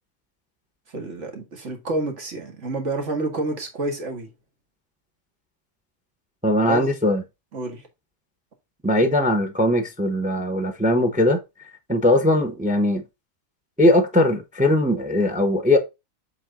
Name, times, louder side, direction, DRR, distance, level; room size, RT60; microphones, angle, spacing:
voice 1, 0.9-4.3 6.7-6.8 7.5-7.8, right 2 dB, 55° right, 2.0 m, -28 dB
voice 2, 6.4-7.2 8.8-11.4 11.9-13.0 13.8-15.8, left 1 dB, 5° right, 0.8 m, -20 dB
7.7 x 3.8 x 3.7 m
omnidirectional pair, 1.5 m